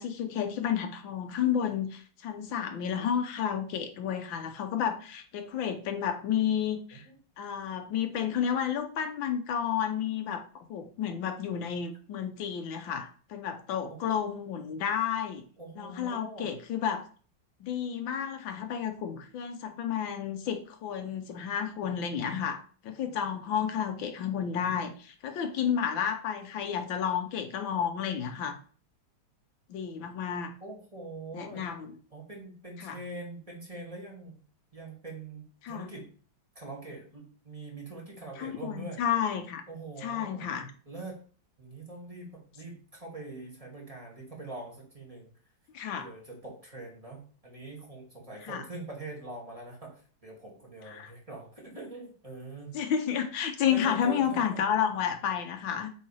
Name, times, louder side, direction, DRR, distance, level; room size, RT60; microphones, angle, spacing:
voice 1, 0.0-7.1 7.4-15.4 15.8-17.0 17.6-28.6 29.7-30.5 31.3-32.0 32.8-33.0 35.6-35.9 38.4-39.6 40.0-40.7 45.7-46.1 48.4-48.6 50.9-51.1 52.7-55.9, left 8 dB, 80° left, 7 dB, 1.6 m, -31 dB
voice 2, 15.6-16.5 30.6-31.7 32.1-34.4 34.7-36.1 36.6-39.0 39.7-40.5 40.9-41.2 41.6-45.3 46.0-52.8 53.7-54.6, right 2 dB, 20° right, -2 dB, 2.0 m, -43 dB
7.8 x 3.8 x 4.8 m, 0.41 s
omnidirectional pair, 2.1 m